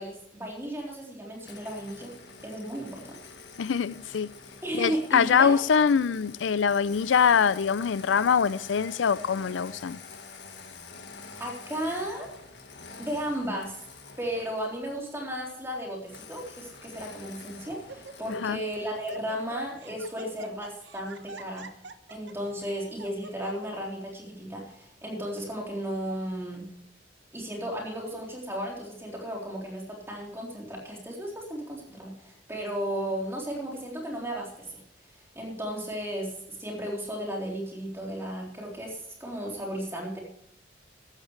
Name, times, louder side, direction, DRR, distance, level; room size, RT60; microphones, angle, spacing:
voice 1, 0.0-2.1 2.4-3.2 4.6-5.6 11.4-12.3 13.0-13.8 14.2-21.7 22.1-26.7 27.3-34.8 35.4-36.3 36.6-40.2, equal, 15° right, 3.8 m, -34 dB
Engine starting, 1.4-14.8 16.1-19.3, left 4 dB, 65° left, 1.6 m, -47 dB
voice 2, 3.6-4.3 4.7-10.0 18.4-18.6, left 6 dB, 85° left, 0.5 m, -23 dB
Laughter, 15.4-15.8 16.5-16.6 17.1-17.4 17.7-18.4 18.7-23.7, right 3 dB, 75° right, 1.0 m, -47 dB
15.0 x 13.0 x 3.3 m
head